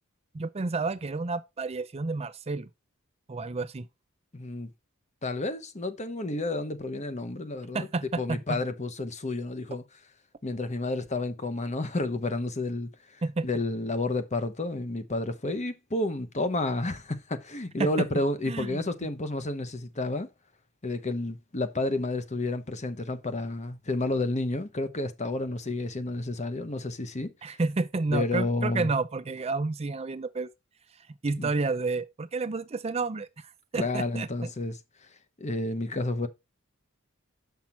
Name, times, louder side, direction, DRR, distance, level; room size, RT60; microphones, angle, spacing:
voice 1, 0.3-2.7 3.3-3.9 7.7-8.6 13.2-13.5 17.8-18.1 18.5-19.1 27.4-30.5 31.2-34.5, right 3 dB, 30° right, 0.5 m, -30 dB
voice 2, 4.3-4.7 5.2-7.9 8.2-9.8 10.4-20.3 20.8-27.3 28.1-28.9 31.4-31.5 33.7-34.8 35.4-36.3, left 2 dB, 35° left, 1.0 m, -30 dB
7.1 x 5.9 x 4.4 m
head